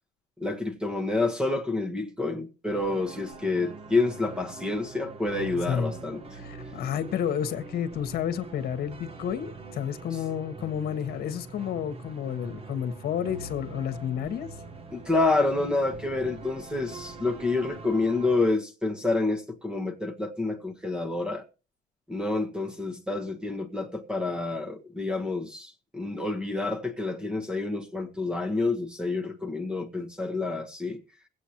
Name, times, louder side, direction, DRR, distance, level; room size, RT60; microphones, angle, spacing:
voice 1, 0.4-6.4 14.9-21.4 22.1-31.0, left 3 dB, 5° right, 1.3 m, -28 dB
sound 1, 2.7-18.5, right 3 dB, 35° right, 1.2 m, -43 dB
voice 2, 6.4-14.5, left 9 dB, 65° left, 1.4 m, -31 dB
22.0 x 8.1 x 3.0 m
cardioid pair, 110°, 17 cm